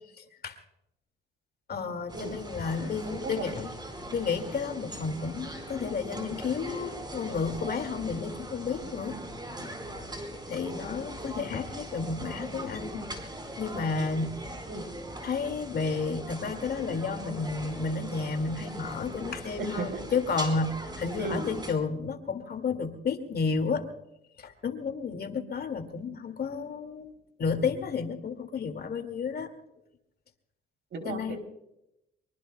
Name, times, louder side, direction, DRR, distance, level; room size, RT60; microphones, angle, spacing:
voice 1, 0.2-0.6 1.7-3.7 4.1-9.2 9.5-9.7 10.5-13.1 13.6-14.3 15.2-23.9 24.4-27.1 27.4-29.5 31.0-31.4, left 5 dB, 50° left, 7 dB, 2.1 m, -32 dB
sound 1, 2.1-21.7, right 1 dB, 20° right, 4.1 m, -40 dB
voice 2, 3.0-3.6 14.7-14.9 19.6-19.9 21.2-21.5 30.9-31.4, right 3 dB, 65° right, 6 dB, 3.2 m, -35 dB
23.5 x 23.5 x 2.2 m, 0.84 s
cardioid pair, 90°, 20 cm